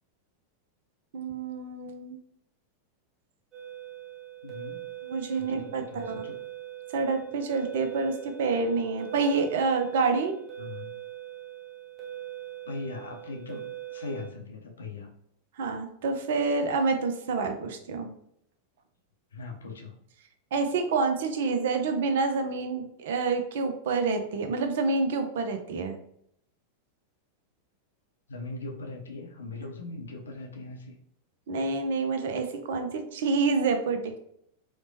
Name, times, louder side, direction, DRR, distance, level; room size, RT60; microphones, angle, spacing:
voice 1, 1.1-2.2 5.0-6.2 6.9-10.3 15.6-18.1 20.5-26.0 31.5-34.2, right 4 dB, 55° right, 7 dB, 0.4 m, -28 dB
sound 1, 3.5-14.3, right 12 dB, 25° right, 0.8 m, -42 dB
voice 2, 4.4-4.8 5.3-6.4 10.6-10.9 12.6-15.1 19.3-19.9 28.3-31.0, left 3 dB, 70° left, 2 dB, 0.6 m, -40 dB
4.2 x 2.1 x 2.8 m, 0.73 s
figure-of-eight pair, 90°, 0 cm